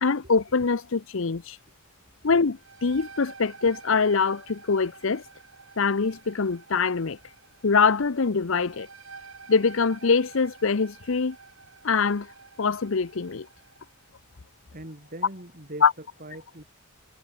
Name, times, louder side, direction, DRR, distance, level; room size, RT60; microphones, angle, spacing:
voice 1, 0.0-1.6 2.2-5.2 5.8-7.2 7.6-8.9 9.5-11.4 11.8-12.3 12.6-13.5 15.8-15.9, left 5 dB, 65° left, 0.7 m, -24 dB
sound 1, 2.4-13.9, right 4 dB, 65° right, 5.3 m, -49 dB
voice 2, 14.7-16.6, right 1 dB, 40° right, 3.8 m, -41 dB
head